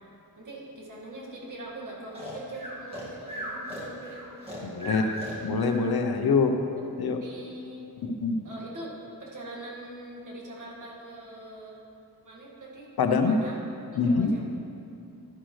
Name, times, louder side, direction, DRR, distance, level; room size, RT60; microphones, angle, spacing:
voice 1, 0.4-4.2 4.8-5.1 6.7-6.8 7.2-7.9 8.4-11.9 12.2-12.9 13.3-13.6 13.9-14.5, right 1 dB, 55° right, -3 dB, 1.9 m, -42 dB
Breathing, 2.1-5.8, equal, 15° right, 1.9 m, -37 dB
voice 2, 4.6-6.6 7.0-7.2 8.0-8.4 13.0-13.4 13.9-14.3, left 4 dB, 75° left, 5 dB, 0.8 m, -25 dB
11.5 x 10.0 x 3.2 m, 2.6 s
wide cardioid pair, 170°, 37 cm